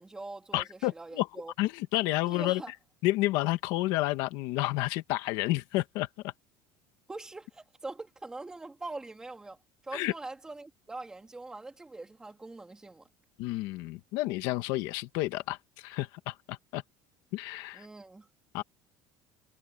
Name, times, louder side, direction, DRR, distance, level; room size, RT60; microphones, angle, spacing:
voice 1, 0.0-1.5 2.2-2.7 7.1-9.6 9.8-13.1 17.7-18.3, right 2 dB, 10° right, 3.2 m, -43 dB
voice 2, 0.5-1.3 1.6-2.6 3.0-6.3 9.9-10.1 13.4-16.8 17.3-17.9 18.5-18.6, left 18 dB, 60° left, 1.3 m, -30 dB
cardioid pair, 180°, 8 cm